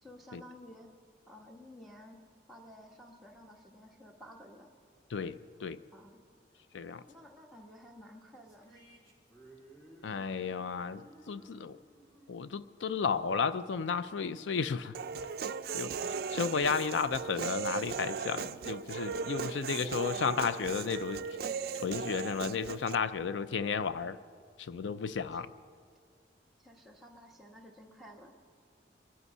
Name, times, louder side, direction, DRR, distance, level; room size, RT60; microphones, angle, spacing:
voice 1, 0.0-0.9 1.3-2.2 2.5-4.7 5.9-6.2 7.1-8.8 25.0-25.2 26.6-28.3, equal, ahead, -1 dB, 1.2 m, -53 dB
voice 2, 5.1-5.8 6.7-7.0 10.0-11.8 12.3-15.0 15.7-21.2 21.8-24.2 24.6-25.5, left 5 dB, 80° left, 14 dB, 0.4 m, -33 dB
sound 1, 8.4-13.8, right 1 dB, 20° left, 2.3 m, -59 dB
Human voice, 14.9-23.0, right 6 dB, 55° right, 0.4 m, -37 dB
23.5 x 11.0 x 5.5 m, 2.1 s
head